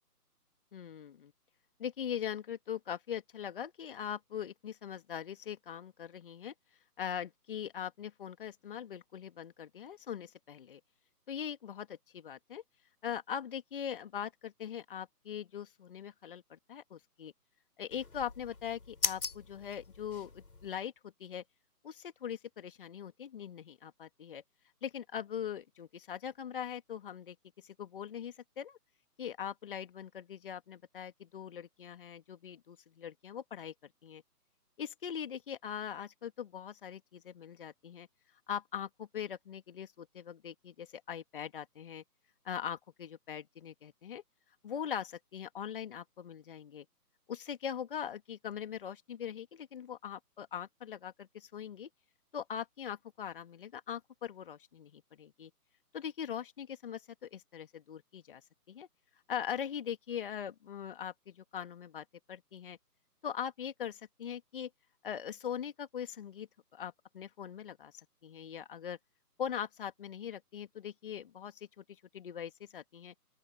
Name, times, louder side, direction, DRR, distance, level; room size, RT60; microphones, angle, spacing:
voice 1, 0.7-1.3 1.8-6.5 7.0-10.8 11.3-12.6 13.0-17.3 17.8-21.4 21.8-24.4 24.8-28.8 29.2-33.7 34.0-34.2 34.8-38.1 38.5-42.0 42.4-44.2 44.6-46.9 47.3-51.9 52.3-55.5 55.9-58.4 58.7-58.9 59.3-62.8 63.2-64.7 65.0-69.0 69.4-73.1, left 8 dB, 35° left, 2.6 m, -41 dB
sound 1, 17.9-20.7, left 4 dB, 70° left, 6.6 m, -39 dB
open air
figure-of-eight pair, 145°, 47 cm